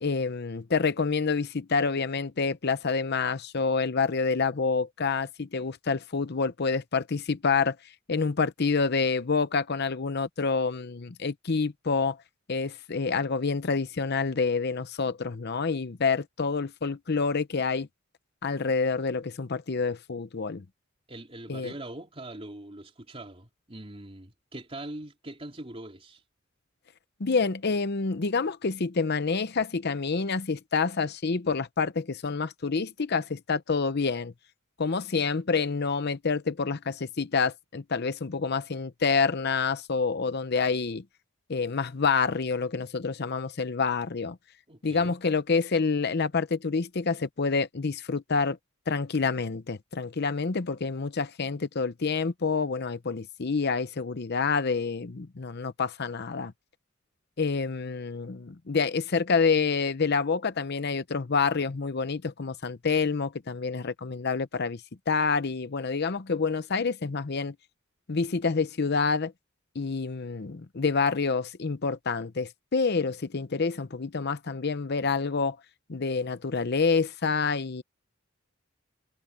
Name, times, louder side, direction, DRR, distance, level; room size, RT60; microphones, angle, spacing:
voice 1, 0.0-7.8 8.1-12.2 12.5-17.9 18.4-20.6 21.5-21.7 27.2-34.3 34.8-41.0 41.5-44.4 44.8-48.6 48.9-56.5 57.4-67.5 68.1-69.3 69.7-75.6 75.9-77.8, left 4 dB, 55° left, 0.7 m, -27 dB
voice 2, 21.1-26.2 44.7-45.2, right 1 dB, 30° right, 3.2 m, -42 dB
head